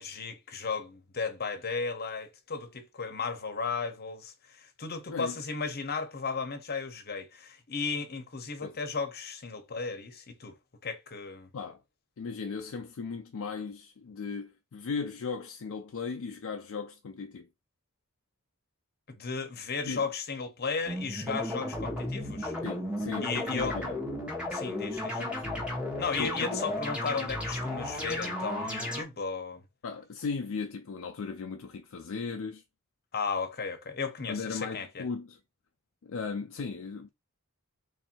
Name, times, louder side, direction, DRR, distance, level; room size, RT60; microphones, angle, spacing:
voice 1, 0.0-10.5 10.8-11.5 19.1-22.5 23.2-23.7 24.5-25.2 26.0-29.6 33.1-35.0, left 4 dB, 45° left, 0.8 m, -35 dB
voice 2, 5.1-5.4 8.6-8.8 11.5-11.8 12.2-17.5 19.9-20.1 22.6-24.0 25.2-25.6 26.2-26.7 29.8-32.6 34.3-35.4 36.0-37.1, left 5 dB, 60° left, 0.4 m, -37 dB
sound 1, 20.9-29.0, left 1 dB, 5° right, 1.0 m, -34 dB
3.2 x 2.7 x 4.4 m
head